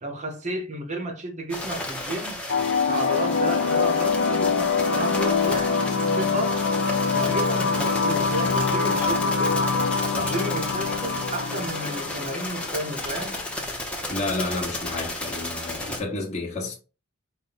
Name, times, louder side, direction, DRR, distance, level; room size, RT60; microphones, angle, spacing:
voice 1, 0.0-2.4 2.8-6.6 7.1-9.6 10.1-13.4, right 1 dB, 30° right, 0.8 m, -32 dB
sound 1, 1.5-16.0, left 1 dB, 5° left, 0.9 m, -33 dB
sound 2, 2.5-13.5, left 4 dB, 55° left, 0.6 m, -24 dB
voice 2, 14.1-16.7, left 2 dB, 30° left, 1.2 m, -30 dB
5.1 x 2.2 x 4.0 m
head